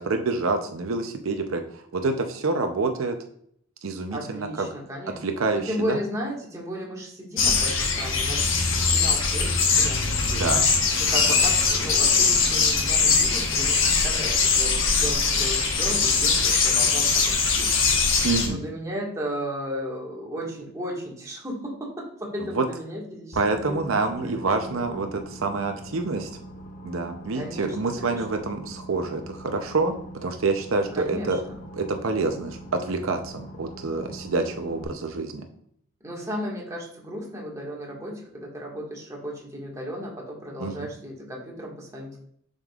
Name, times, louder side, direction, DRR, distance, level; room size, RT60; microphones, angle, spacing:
voice 1, 0.0-3.2 3.8-4.7 5.2-5.6 5.9-6.0 10.3-10.7 11.2-11.4 18.2-18.6 22.5-22.6 23.3-26.3 26.8-29.9 30.2-31.4 31.7-35.4 40.6-40.9, right 3 dB, 75° right, 5 dB, 0.7 m, -27 dB
voice 2, 4.1-5.2 5.5-10.5 11.0-23.4 23.7-24.8 27.3-28.2 30.9-31.6 36.0-42.2, equal, 15° right, -3 dB, 1.7 m, -35 dB
sound 1, 7.4-18.5, left 5 dB, 65° left, 1.1 m, -21 dB
Boat Water vehicle, 23.3-34.8, right 1 dB, 40° left, 0.8 m, -43 dB
7.4 x 5.3 x 2.4 m, 0.67 s
head